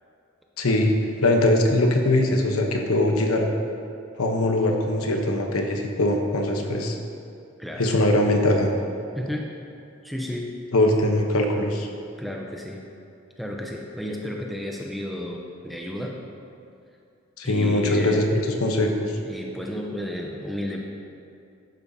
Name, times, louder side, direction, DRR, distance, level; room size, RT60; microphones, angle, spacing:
voice 1, 0.6-0.9 1.2-3.5 4.2-7.0 7.8-8.7 10.7-11.9 17.4-19.1, left 1 dB, 80° left, 2 dB, 1.0 m, -21 dB
voice 2, 7.6-7.9 9.1-9.5 10.0-10.5 12.2-12.8 13.4-16.2 17.4-18.2 19.2-20.8, left 1 dB, ahead, -1 dB, 0.7 m, -32 dB
12.0 x 8.7 x 2.8 m, 2.5 s
head